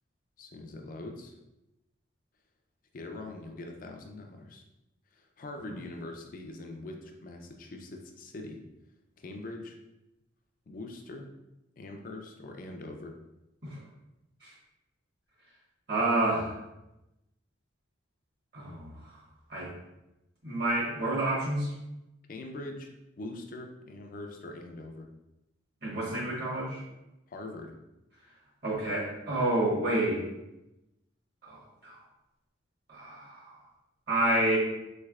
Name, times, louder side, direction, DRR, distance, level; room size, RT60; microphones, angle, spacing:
voice 1, 0.4-1.4 2.9-4.6 5.1-8.6 9.2-9.8 10.7-11.3 11.8-13.1 22.3-22.9 23.2-25.1 27.3-27.7, left 2 dB, 45° left, 3 dB, 0.4 m, -42 dB
voice 2, 15.9-16.5 18.5-19.2 19.5-19.7 20.4-21.7 25.8-26.8 28.6-30.2 31.4-32.0 32.9-33.6 34.1-34.6, right 1 dB, 50° right, -6 dB, 1.2 m, -29 dB
3.3 x 3.2 x 2.3 m, 0.93 s
head